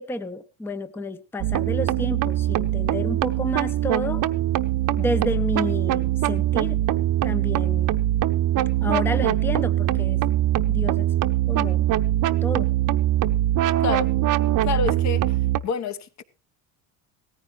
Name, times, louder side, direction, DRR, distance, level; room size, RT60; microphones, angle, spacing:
voice 1, 0.0-4.2 5.0-6.8 7.2-7.9 8.8-10.2 10.7-11.1 11.5-11.8 12.4-12.7, left 1 dB, 5° left, 0.6 m, -30 dB
sound 1, 1.4-15.6, right 13 dB, 45° right, 0.8 m, -22 dB
voice 2, 13.8-14.1 14.6-15.4 15.6-16.2, left 6 dB, 40° left, 1.1 m, -28 dB
17.5 x 14.5 x 3.2 m
cardioid pair, 140°, 43 cm